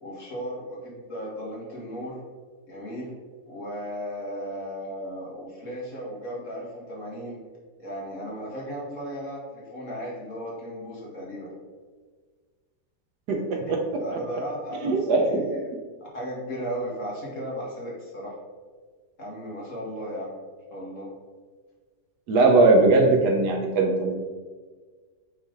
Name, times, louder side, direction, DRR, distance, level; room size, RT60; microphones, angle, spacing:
voice 1, 0.0-2.2 2.7-3.1 3.5-7.4 7.8-11.5 13.5-15.6 16.0-18.4 19.2-20.3 20.7-21.1, equal, 50° left, -5 dB, 2.2 m, -36 dB
voice 2, 13.3-14.0 14.8-15.4 22.3-24.1, right 3 dB, 85° right, 2 dB, 1.5 m, -20 dB
8.4 x 3.4 x 3.9 m, 1.5 s
omnidirectional pair, 1.7 m